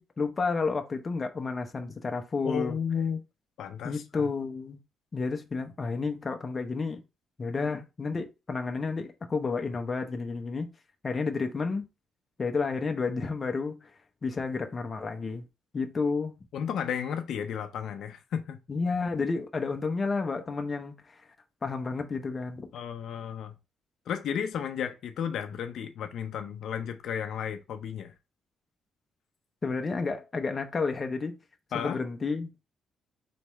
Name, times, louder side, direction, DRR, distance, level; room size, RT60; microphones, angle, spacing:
voice 1, 0.0-2.8 3.8-4.8 5.1-7.0 7.4-10.7 11.0-11.8 12.4-13.9 14.2-15.4 15.7-16.3 18.7-21.1 21.6-22.7 29.6-31.3 31.7-32.6, left 4 dB, 25° left, 0.7 m, -31 dB
voice 2, 2.4-3.2 3.6-4.3 16.5-18.6 22.7-23.6 24.1-28.1 31.7-32.0, left 8 dB, 70° left, 0.6 m, -33 dB
4.2 x 3.5 x 3.0 m
cardioid pair, 140°, 0 cm